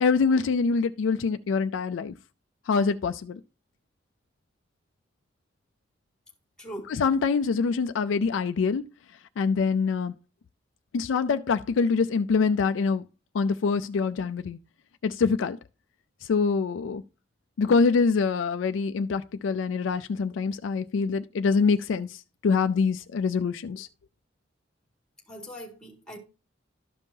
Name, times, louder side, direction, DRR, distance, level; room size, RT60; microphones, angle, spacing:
voice 1, 0.0-2.1 2.7-3.4 6.9-8.8 9.4-10.1 10.9-13.0 13.3-14.6 15.0-15.6 16.3-17.0 17.6-22.1 22.4-23.9, left 5 dB, 80° left, 0.4 m, -25 dB
voice 2, 6.6-6.9 25.3-26.2, equal, 5° left, 1.9 m, -40 dB
12.5 x 5.3 x 2.7 m
head